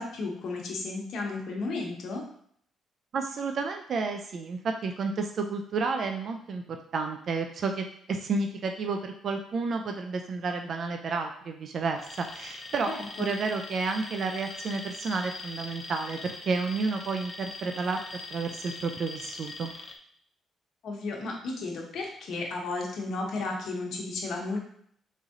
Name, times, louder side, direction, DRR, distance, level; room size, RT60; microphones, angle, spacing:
voice 1, 0.0-2.2 12.9-13.3 20.8-24.6, left 3 dB, 70° left, 0 dB, 1.1 m, -33 dB
voice 2, 3.1-12.9 13.2-18.0 18.3-19.7, right 4 dB, 55° right, 5 dB, 0.4 m, -31 dB
Alarm, 12.0-20.0, left 2 dB, 35° left, 0.6 m, -42 dB
3.9 x 3.1 x 3.7 m, 0.64 s
cardioid pair, 90°, 0 cm